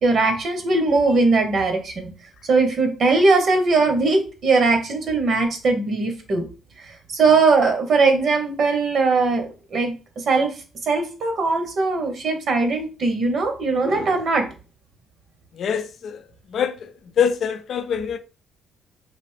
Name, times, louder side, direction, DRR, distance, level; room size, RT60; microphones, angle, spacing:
voice 1, 0.0-2.1 2.5-6.4 6.8-10.5 10.8-14.4, right 3 dB, 65° right, 0.9 m, -20 dB
voice 2, 15.6-16.2 16.5-16.9 17.2-18.2, left 7 dB, 65° left, 0.4 m, -24 dB
3.3 x 2.5 x 3.3 m
cardioid pair, 90°, 0 cm